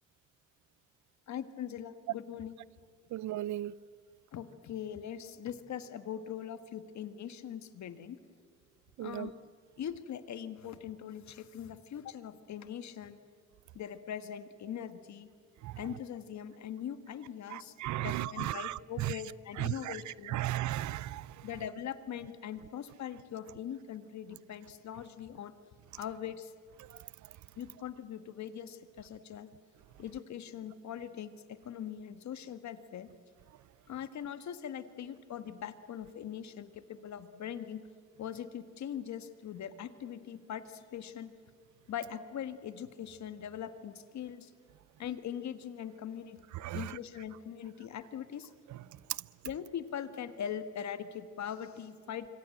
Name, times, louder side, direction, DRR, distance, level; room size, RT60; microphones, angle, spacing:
voice 1, 1.3-2.5 4.3-8.2 9.0-9.4 9.8-13.2 13.7-15.3 15.8-20.4 21.4-25.5 26.0-26.5 27.6-29.5 30.0-33.1 33.9-37.8 38.2-41.3 41.9-44.5 45.0-46.4 46.7-48.5 49.4-52.3, left 9 dB, 65° left, 1.6 m, -41 dB
voice 2, 3.1-3.7 9.0-9.3 15.6-15.8 17.5-19.2 19.6-21.5 46.5-47.0 48.7-48.8, right 14 dB, 75° right, 0.6 m, -36 dB
25.5 x 25.0 x 7.8 m
cardioid pair, 90°, 30 cm